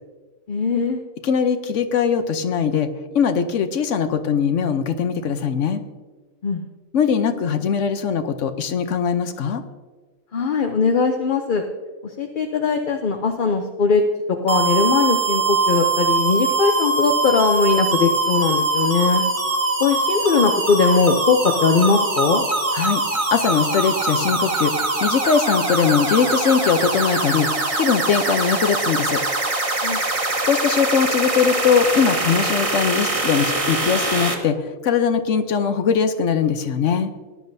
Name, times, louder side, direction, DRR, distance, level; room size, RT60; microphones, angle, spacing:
voice 1, 0.5-1.0 6.4-6.6 10.3-11.6 12.2-14.0 14.4-19.2 19.8-22.4 29.8-30.0, left 5 dB, 50° left, 4 dB, 0.7 m, -20 dB
voice 2, 1.2-2.9 3.1-5.8 6.9-9.6 22.7-23.0 23.3-24.7 25.0-27.5 27.8-29.2 30.4-34.6 34.8-37.1, left 6 dB, 65° left, 9 dB, 1.1 m, -20 dB
sound 1, 14.5-34.3, right 2 dB, 25° right, 1.2 m, -22 dB
18.0 x 10.5 x 2.7 m, 1.4 s
omnidirectional pair, 1.4 m